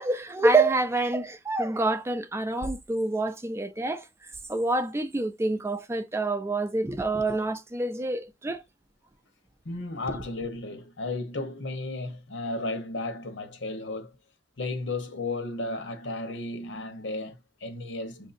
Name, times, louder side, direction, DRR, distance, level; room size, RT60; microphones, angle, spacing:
voice 1, 0.0-4.1 4.5-8.6, right 2 dB, 15° right, 0.4 m, -27 dB
voice 2, 9.6-14.1 14.6-18.3, left 2 dB, 80° left, 1.0 m, -34 dB
6.0 x 2.7 x 2.6 m
head